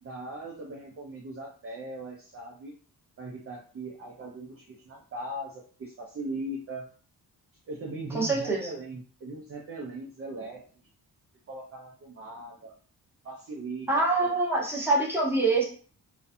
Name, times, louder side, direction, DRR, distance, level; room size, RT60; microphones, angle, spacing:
voice 1, 0.0-2.7 3.2-6.9 7.7-10.6 11.5-12.7 13.2-13.9 14.2-14.3, right 2 dB, 35° right, -2 dB, 0.4 m, -39 dB
voice 2, 8.1-8.6 13.9-15.6, right 3 dB, 5° right, -5 dB, 0.8 m, -25 dB
2.5 x 2.2 x 2.5 m, 0.41 s
wide cardioid pair, 155°, 39 cm